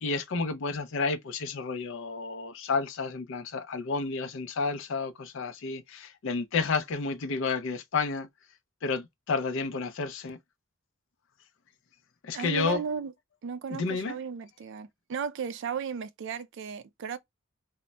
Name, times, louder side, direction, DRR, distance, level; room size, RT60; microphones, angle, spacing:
voice 1, 0.0-8.3 8.8-10.4 12.2-12.8 13.7-14.2, left 4 dB, 60° left, 0.5 m, -31 dB
voice 2, 12.3-13.1 13.4-17.2, right 6 dB, 60° right, 0.3 m, -35 dB
2.1 x 2.1 x 3.8 m
head